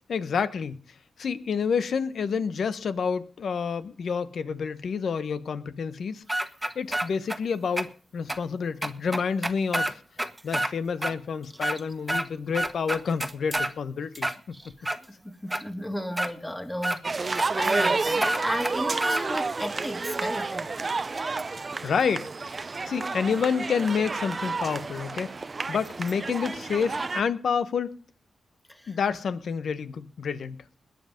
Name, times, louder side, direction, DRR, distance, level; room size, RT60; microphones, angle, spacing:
voice 1, 0.1-0.8 1.2-6.2 6.7-10.0 10.4-14.5 21.8-22.3 22.9-25.3 25.7-28.0 28.9-30.6, left 6 dB, 70° left, 1.2 m, -28 dB
sound 1, 6.3-7.4 7.8-7.9 8.3-8.4 8.8-10.7 11.0-11.1 11.5-12.3 12.5-13.7 14.2-15.0 15.5-15.6 16.2-16.3 16.8-17.0 17.4-17.5 17.7-17.9 18.2-19.2, right 1 dB, 10° right, 1.4 m, -28 dB
voice 2, 14.8-20.7 28.7-29.0, equal, 10° left, 2.5 m, -34 dB
sound 2, 17.0-27.2, right 4 dB, 40° right, 0.6 m, -30 dB
20.5 x 8.1 x 5.3 m
cardioid pair, 80°, 0 cm